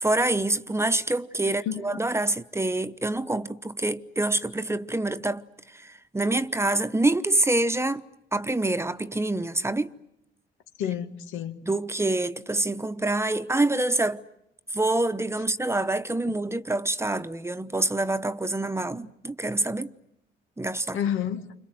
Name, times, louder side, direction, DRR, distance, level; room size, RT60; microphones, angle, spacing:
voice 1, 0.0-8.0 8.3-9.9 11.6-14.2 14.7-19.9 20.6-21.0, right 2 dB, 15° right, 1.0 m, -26 dB
voice 2, 1.4-2.0 10.8-11.6 16.2-16.3 20.9-21.5, left 9 dB, 90° left, 2.1 m, -30 dB
29.0 x 26.5 x 7.8 m
cardioid pair, 90°, 20 cm